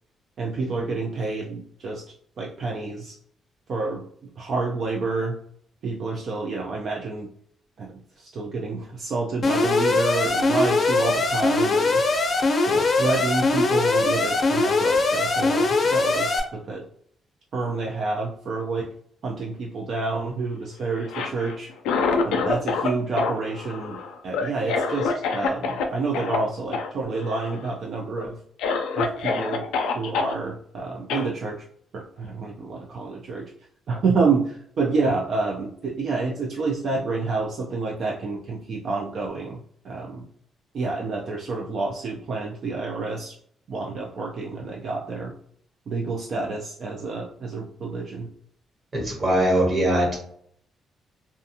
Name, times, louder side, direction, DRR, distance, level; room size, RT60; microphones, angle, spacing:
voice 1, 0.4-2.0 2.4-3.2 3.7-4.0 4.4-5.4 5.8-7.3 7.8-12.0 12.7-16.8 17.5-18.9 19.2-21.7 22.2-28.4 29.0-29.7 29.9-31.6 31.9-33.5 33.9-39.6 39.8-40.2 40.7-43.4 43.7-45.3 45.9-48.3, right 3 dB, 60° right, -1 dB, 0.4 m, -28 dB
Alarm, 9.4-16.4, left 3 dB, 45° left, 0.6 m, -21 dB
Cough, 21.0-22.9 23.2-25.9 26.1-26.4 26.7-26.9 27.2-27.7 28.2-28.3 28.6-30.3 31.1-31.3, left 4 dB, 90° left, 0.4 m, -26 dB
voice 2, 48.9-50.1, right 1 dB, 35° right, -1 dB, 1.1 m, -21 dB
2.5 x 2.2 x 2.7 m, 0.63 s
cardioid pair, 90°, 0 cm